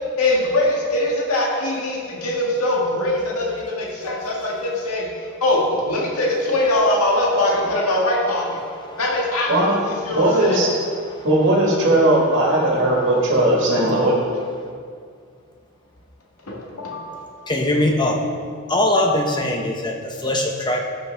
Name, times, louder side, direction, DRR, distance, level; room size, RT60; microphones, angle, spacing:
voice 1, 0.2-5.1 5.4-8.6 9.0-10.6 16.5-17.3, left 1 dB, 80° left, -4 dB, 1.8 m, -22 dB
voice 2, 8.6-9.0 11.2-11.3 17.5-18.3 18.7-20.8, left 1 dB, 20° left, 2 dB, 0.7 m, -21 dB
voice 3, 9.5-9.8 10.1-10.7 11.2-14.2, right 1 dB, 55° right, -3 dB, 1.6 m, -18 dB
14.0 x 6.4 x 3.4 m, 2.2 s
head